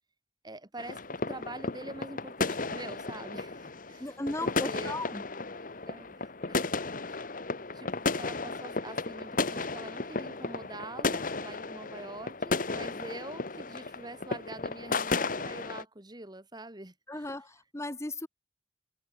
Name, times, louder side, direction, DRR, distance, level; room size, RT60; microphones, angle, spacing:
voice 1, 0.4-4.1 4.4-5.0 5.9-6.8 7.1-7.2 7.7-17.3, right 2 dB, 25° right, 2.3 m, -45 dB
sound 1, 0.8-15.8, left 3 dB, 50° left, 1.5 m, -34 dB
voice 2, 4.0-5.2 17.1-18.3, left 2 dB, 15° left, 1.3 m, -36 dB
head